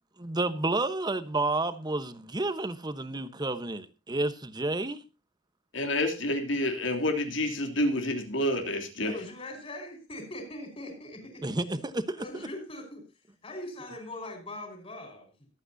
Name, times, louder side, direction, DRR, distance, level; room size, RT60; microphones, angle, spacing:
voice 1, 0.2-5.0 11.4-12.2, right 2 dB, 20° right, 1.1 m, -30 dB
voice 2, 5.7-9.1, left 1 dB, 80° left, 3.0 m, -28 dB
voice 3, 9.0-11.6 12.2-13.1 13.4-15.3, left 1 dB, 30° left, 5.2 m, -41 dB
23.5 x 8.9 x 2.7 m
head